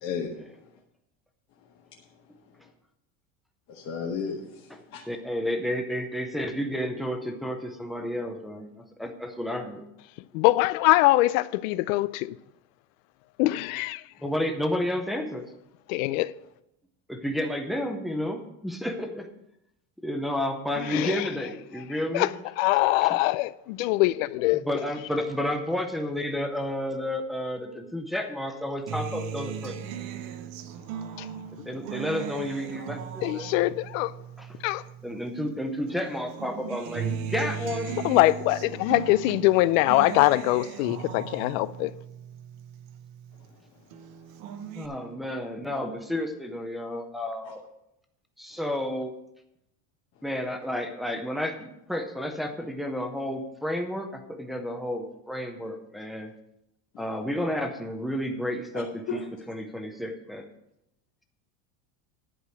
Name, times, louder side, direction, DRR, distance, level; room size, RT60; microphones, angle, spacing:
voice 1, 0.0-0.3 3.7-5.0 47.4-47.5 59.1-59.2, left 6 dB, 35° left, 1.0 m, -33 dB
voice 2, 5.1-9.9 14.2-15.4 17.1-19.3 20.0-22.3 23.0-23.2 24.6-29.8 31.3-33.5 34.4-34.5 35.0-38.0 44.7-47.6 48.4-49.1 50.2-56.3 57.0-59.2 59.5-60.5, left 1 dB, ahead, 0.5 m, -31 dB
voice 3, 10.3-12.4 13.4-14.0 15.9-16.3 20.8-21.3 22.1-24.7 31.2-31.3 33.2-34.1 34.6-34.8 38.0-41.9, left 18 dB, 85° left, 0.6 m, -23 dB
Acoustic guitar, 28.9-35.5 35.9-43.5 43.9-44.9, right 8 dB, 55° right, 0.9 m, -38 dB
11.0 x 5.0 x 7.6 m
cardioid pair, 175°, 39 cm